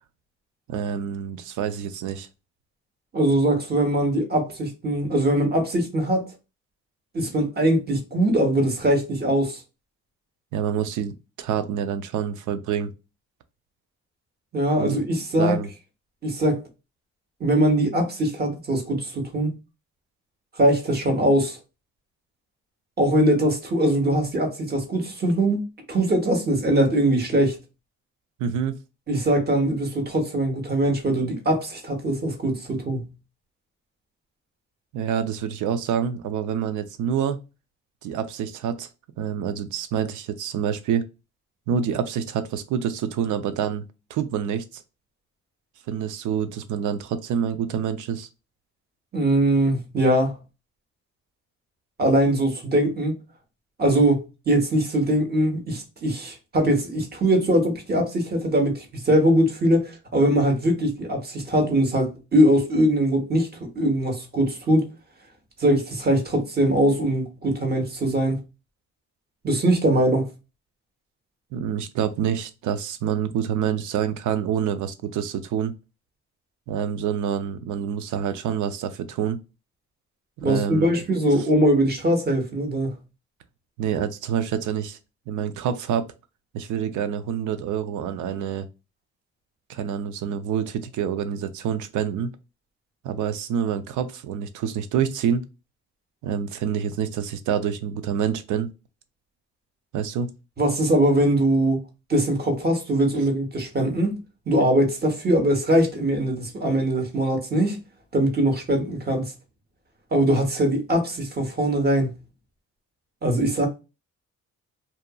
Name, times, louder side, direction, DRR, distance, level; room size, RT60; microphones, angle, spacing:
voice 1, 0.7-2.3 10.5-12.9 14.8-15.0 15.4-15.7 28.4-28.8 34.9-37.4 38.0-38.9 39.2-41.0 41.7-43.8 44.1-44.8 45.9-48.3 71.5-75.7 76.7-79.4 80.4-80.9 83.8-85.0 85.3-86.1 86.5-88.7 89.7-92.3 93.0-95.4 96.2-98.7 99.9-100.3, right 8 dB, 80° right, 0.5 m, -27 dB
voice 2, 3.1-6.3 7.1-9.6 14.5-15.6 16.2-16.6 17.4-19.5 20.6-21.6 23.0-25.6 25.9-27.6 29.1-33.1 49.1-50.4 52.0-53.2 53.8-63.5 63.7-64.8 65.6-68.4 69.4-70.3 80.4-83.0 100.6-101.8 102.1-104.2 104.5-107.8 108.1-109.3 110.1-112.2 113.2-113.7, right 1 dB, 30° right, 1.0 m, -21 dB
2.8 x 2.4 x 2.2 m
cardioid pair, 90°, 30 cm